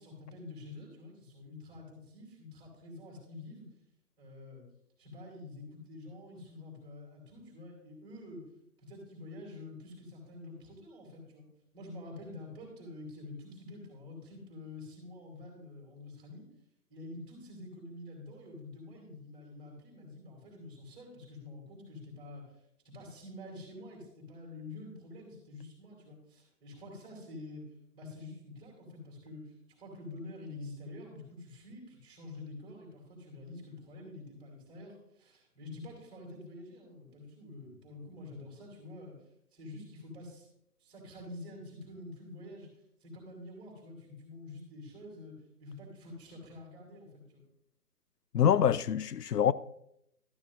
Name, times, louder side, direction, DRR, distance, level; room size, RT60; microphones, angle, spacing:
voice 1, 0.0-3.7 4.2-4.6 5.0-8.4 8.8-11.5 11.7-16.4 16.9-22.6 22.8-27.6 27.9-39.1 39.5-40.5 40.8-42.7 43.0-45.3 45.6-47.4, left 2 dB, 10° right, 3.3 m, -47 dB
voice 2, 48.3-49.5, left 9 dB, 85° left, 0.5 m, -25 dB
12.5 x 11.0 x 2.6 m
figure-of-eight pair, 145°, 46 cm